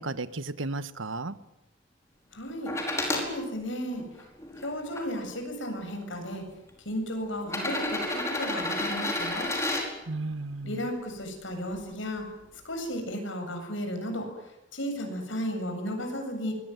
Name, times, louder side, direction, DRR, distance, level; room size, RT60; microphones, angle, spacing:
voice 1, 0.0-1.3 10.1-10.8, right 2 dB, 80° right, 13 dB, 1.3 m, -34 dB
voice 2, 2.3-2.7 3.1-4.0 4.6-6.4 6.8-9.5 10.6-12.2 12.6-14.3 14.7-16.5, equal, 75° left, 5 dB, 7.8 m, -34 dB
sound 1, 2.7-3.3 4.0-5.0 6.0-6.1 7.4-9.9 11.7-11.8, left 1 dB, 15° left, 5.1 m, -30 dB
24.5 x 22.0 x 9.5 m, 0.92 s
head